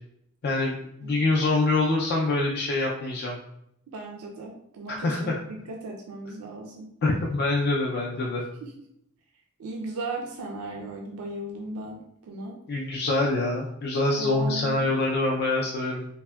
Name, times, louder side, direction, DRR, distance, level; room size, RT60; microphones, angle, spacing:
voice 1, 0.4-0.7 1.0-3.4 4.9-5.4 7.0-8.4 12.7-16.1, left 2 dB, 50° left, -1 dB, 0.3 m, -25 dB
voice 2, 3.9-6.9 8.6-8.7 9.6-12.6 14.2-14.9, right 2 dB, 80° right, 0 dB, 0.4 m, -37 dB
3.4 x 2.1 x 2.2 m, 0.77 s
head